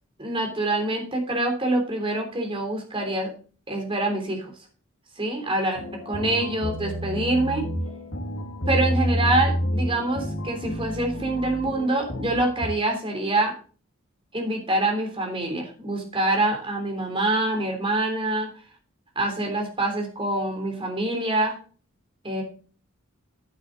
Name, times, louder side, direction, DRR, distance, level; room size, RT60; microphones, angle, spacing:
voice 1, 0.2-3.3 3.7-4.5 5.2-7.6 8.7-13.5 14.3-18.5 19.1-21.5 22.2-22.4, right 2 dB, 25° right, 2 dB, 3.4 m, -25 dB
sound 1, 5.8-12.7, equal, 85° left, 2.1 m, -29 dB
10.0 x 9.1 x 4.0 m, 0.39 s
head